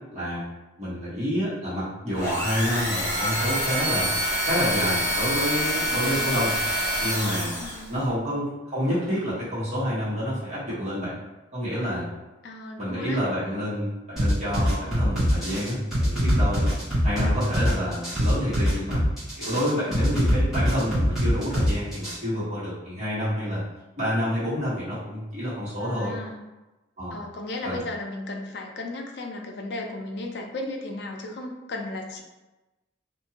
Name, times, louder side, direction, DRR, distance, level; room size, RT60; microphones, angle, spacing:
voice 1, 0.1-0.4 0.8-4.1 4.5-6.5 7.0-7.6 7.9-11.2 11.5-12.1 12.8-16.7 17.0-19.0 19.4-23.6 24.0-26.1 27.0-27.2 27.6-27.8, equal, 40° right, -11 dB, 1.4 m, -28 dB
sound 1, 2.1-7.9, equal, 20° left, 1.0 m, -26 dB
sound 2, 3.1-7.5 8.4-8.5, right 3 dB, 70° right, 0.8 m, -40 dB
voice 2, 6.0-6.4 7.6-8.0 12.4-13.2 19.9-20.5 25.8-26.4 27.1-32.2, left 2 dB, 60° left, 2 dB, 0.4 m, -35 dB
sound 3, 14.2-22.2, equal, ahead, 1.3 m, -23 dB
2.6 x 2.5 x 2.8 m, 1.1 s
head